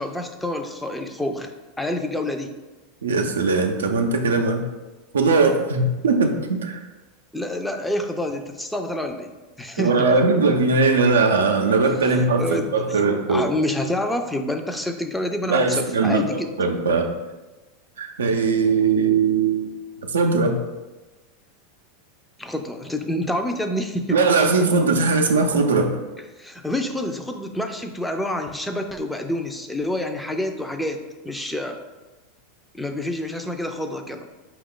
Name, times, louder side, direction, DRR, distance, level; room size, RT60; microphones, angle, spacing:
voice 1, 0.0-1.5 1.8-2.5 7.3-9.3 9.6-10.1 12.2-13.0 13.3-16.5 22.4-24.2 26.4-31.8 32.7-34.3, left 1 dB, 5° left, 5 dB, 0.4 m, -27 dB
voice 2, 3.0-4.6 5.1-6.8 9.8-13.4 15.5-17.1 18.0-19.8 20.1-20.6 24.1-26.0, right 4 dB, 90° right, 4 dB, 0.4 m, -20 dB
4.6 x 2.3 x 3.7 m, 1.1 s
hypercardioid pair, 100°, 0 cm